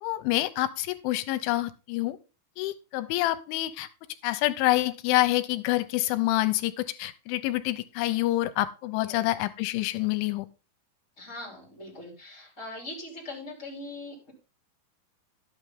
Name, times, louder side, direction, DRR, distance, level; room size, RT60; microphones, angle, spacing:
voice 1, 0.0-2.2 2.6-3.9 4.2-10.5, left 16 dB, 85° left, 11 dB, 3.1 m, -27 dB
voice 2, 9.0-9.3 11.2-14.3, left 2 dB, 20° left, -1 dB, 2.7 m, -41 dB
11.0 x 8.7 x 3.7 m, 0.30 s
omnidirectional pair, 5.5 m